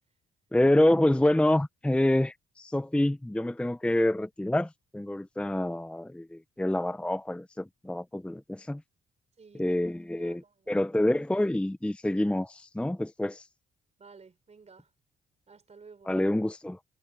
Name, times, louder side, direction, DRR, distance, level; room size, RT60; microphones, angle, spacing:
voice 1, 0.5-8.8 9.6-10.4 10.7-13.5 16.1-16.8, left 1 dB, 5° left, 0.7 m, -27 dB
voice 2, 9.4-10.9 14.0-14.9 15.5-16.2, right 5 dB, 35° right, 4.3 m, -54 dB
cardioid pair, 90°, 20 cm